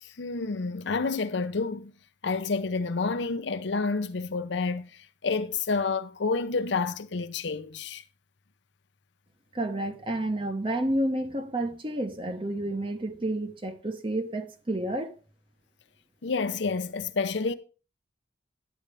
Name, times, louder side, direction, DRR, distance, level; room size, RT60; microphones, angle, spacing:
voice 1, 0.0-1.9 2.2-4.9 5.2-8.0 16.2-17.5, left 4 dB, 70° left, 0.6 m, -29 dB
voice 2, 9.5-15.1, right 1 dB, 30° right, 0.8 m, -30 dB
10.0 x 8.7 x 3.4 m
head